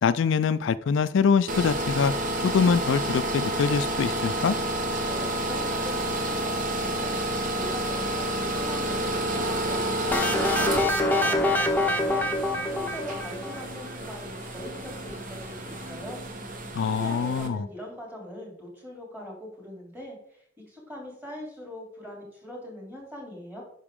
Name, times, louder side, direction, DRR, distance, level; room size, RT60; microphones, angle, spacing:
voice 1, 0.0-2.1 2.4-4.6 16.7-17.6, left 6 dB, 75° left, 0.4 m, -24 dB
sound 1, 1.5-17.5, right 1 dB, 45° right, 1.1 m, -30 dB
voice 2, 5.0-7.2 7.5-16.2 16.7-23.6, left 1 dB, 10° right, 3.1 m, -41 dB
sound 2, 10.1-13.9, left 1 dB, 10° left, 0.8 m, -25 dB
9.7 x 5.8 x 3.6 m
head